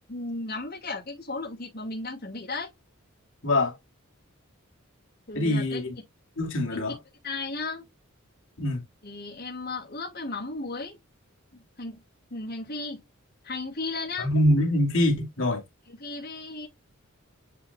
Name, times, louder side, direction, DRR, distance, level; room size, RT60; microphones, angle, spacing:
voice 1, 0.1-2.7 5.3-5.8 6.7-6.9 7.2-7.9 9.0-11.0 11.5-12.0 12.3-13.0 13.4-14.3 15.9-16.7, left 3 dB, 50° left, 2.3 m, -35 dB
voice 2, 3.4-3.7 5.3-5.9 6.4-6.9 8.6-8.8 14.2-15.6, left 1 dB, 65° left, 2.4 m, -24 dB
8.6 x 5.4 x 2.2 m
head